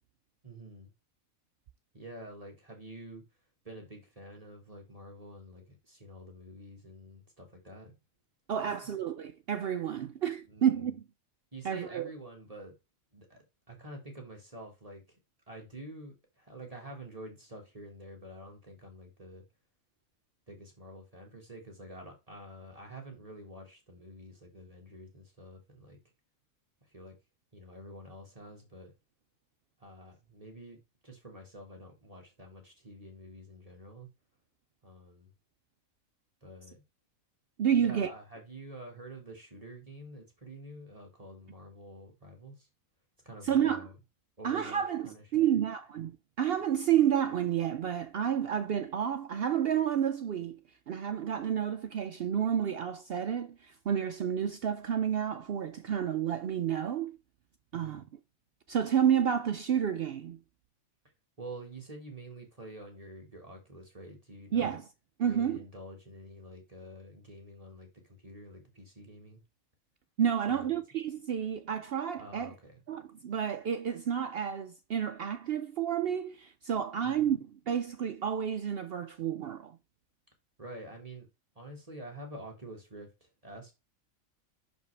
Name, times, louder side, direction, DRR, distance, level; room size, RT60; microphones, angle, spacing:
voice 1, 0.4-0.9 1.9-3.2 3.6-7.9 8.6-8.9 10.5-10.9 11.5-12.7 13.1-15.2 15.5-19.4 20.5-26.0 26.9-27.1 27.5-28.9 29.8-30.8 31.0-34.1 34.8-35.3 36.4-36.8 37.7-42.7 43.2-44.0 44.4-45.6 57.7-58.1 61.4-64.8 65.2-69.4 70.5-70.8 72.2-72.8 77.0-77.4 80.6-81.3 81.5-83.7, right 1 dB, 25° right, 1.6 m, -48 dB
voice 2, 8.5-11.0 11.6-12.1 37.6-38.1 43.4-43.9 44.4-46.1 46.4-50.6 50.9-57.2 57.7-58.0 58.7-60.4 64.5-64.8 65.2-65.6 70.2-72.5 72.9-77.4 77.7-79.8, right 9 dB, 65° right, 0.6 m, -30 dB
6.2 x 5.2 x 3.2 m
omnidirectional pair, 1.5 m